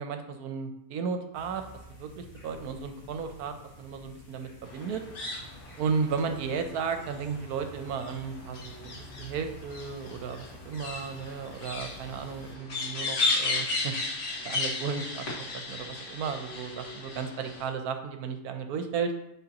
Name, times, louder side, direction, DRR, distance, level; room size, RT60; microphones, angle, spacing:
voice 1, 0.0-1.6 1.9-5.0 5.8-13.9 14.4-19.1, right 6 dB, 75° right, 7 dB, 1.1 m, -34 dB
sound 1, 1.3-12.5, left 1 dB, 20° left, 1.5 m, -50 dB
sound 2, 4.6-17.7, left 3 dB, 70° left, 1.9 m, -35 dB
9.8 x 3.8 x 2.9 m, 0.85 s
omnidirectional pair, 1.7 m